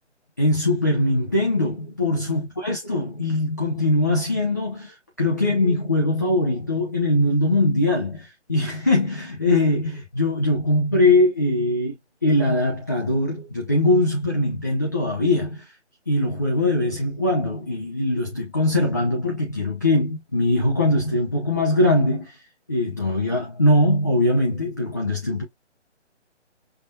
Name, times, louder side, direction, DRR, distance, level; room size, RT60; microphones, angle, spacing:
voice 1, 0.4-12.0 12.2-15.7 16.1-22.3 22.7-25.4, left 1 dB, 15° left, 0.5 m, -21 dB
5.5 x 2.7 x 2.3 m
figure-of-eight pair, 150°, 36 cm